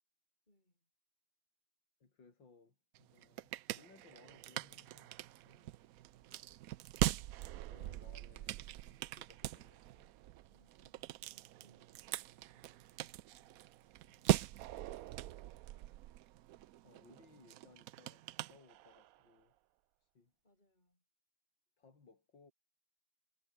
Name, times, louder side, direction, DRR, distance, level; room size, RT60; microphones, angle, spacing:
voice 1, 0.5-0.9 10.5-14.3 15.7-16.1 20.4-21.0, left 1 dB, 20° left, 6.7 m, -75 dB
voice 2, 2.0-5.1 5.4-5.8 7.6-10.1 16.8-19.6 20.0-20.3 21.8-22.5, left 4 dB, 75° left, 4.4 m, -64 dB
sound 1, 2.9-19.2, right 15 dB, 80° right, 0.8 m, -41 dB
omnidirectional pair, 2.1 m